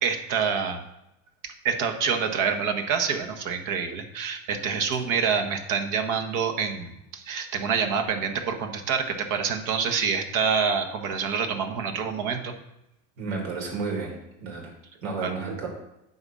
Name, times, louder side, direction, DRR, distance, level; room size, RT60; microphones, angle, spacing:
voice 1, 0.0-0.8 1.4-12.5 15.2-15.3, right 6 dB, 55° right, 6 dB, 1.5 m, -27 dB
voice 2, 13.2-14.1 14.4-14.7 15.0-15.7, right 4 dB, 80° right, 0 dB, 3.6 m, -31 dB
9.5 x 4.2 x 6.3 m, 0.88 s
hypercardioid pair, 100°, 38 cm